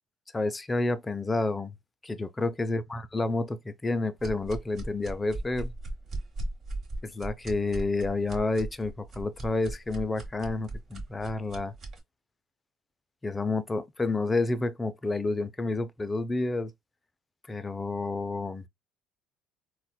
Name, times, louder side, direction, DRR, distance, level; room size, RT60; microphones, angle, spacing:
voice 1, 0.3-1.7 2.0-5.7 7.0-11.7 13.2-16.7 17.5-18.6, left 3 dB, 15° left, 0.3 m, -30 dB
sound 1, 4.2-12.0, right 2 dB, 35° right, 1.2 m, -38 dB
4.0 x 2.1 x 2.2 m
cardioid pair, 140°, 0 cm